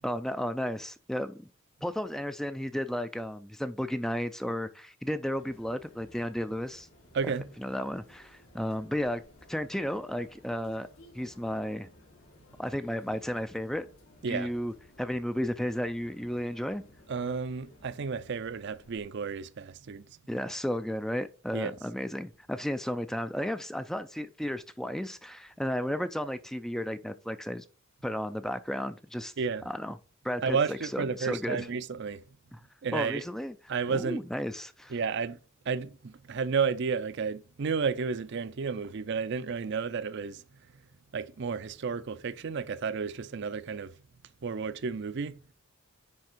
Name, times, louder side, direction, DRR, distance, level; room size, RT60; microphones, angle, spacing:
voice 1, 0.0-1.5 1.8-6.9 7.6-9.2 9.5-10.9 11.1-11.9 12.6-13.9 14.3-16.8 20.3-27.7 28.0-29.3 29.7-30.0 30.2-31.7 32.5-32.6 32.9-33.6 33.9-35.0, equal, ahead, 0.3 m, -33 dB
sound 1, 5.3-19.0, left 1 dB, 80° left, 2.5 m, -57 dB
voice 2, 7.1-7.5 14.2-14.5 17.1-20.0 21.5-21.7 29.4-29.7 30.4-32.2 32.8-33.2 33.7-34.2 34.9-35.4 35.7-40.4 41.1-43.9 44.4-45.4, right 5 dB, 55° right, 0.5 m, -32 dB
9.5 x 3.4 x 4.4 m
head